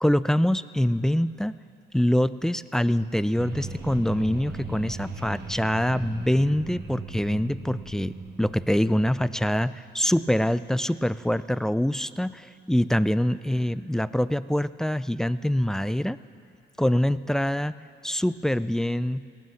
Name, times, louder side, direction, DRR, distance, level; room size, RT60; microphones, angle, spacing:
voice 1, 0.0-1.6 1.9-16.2 16.8-17.7 18.0-19.2, equal, 5° left, 15 dB, 0.3 m, -25 dB
sound 1, 3.4-9.6, right 3 dB, 55° right, 1.9 m, -38 dB
18.0 x 9.3 x 7.0 m, 2.6 s
cardioid pair, 90°, 20 cm